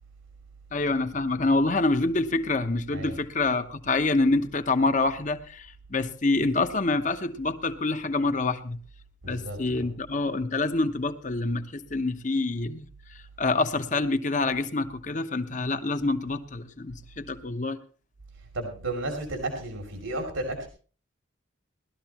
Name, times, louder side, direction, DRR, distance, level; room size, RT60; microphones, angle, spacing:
voice 1, 0.7-8.8 9.2-12.9 13.4-17.8, left 3 dB, 40° left, 9 dB, 1.0 m, -26 dB
voice 2, 9.2-9.8 18.5-20.7, right 2 dB, 90° right, 3 dB, 2.8 m, -33 dB
18.5 x 12.5 x 3.0 m, 0.40 s
head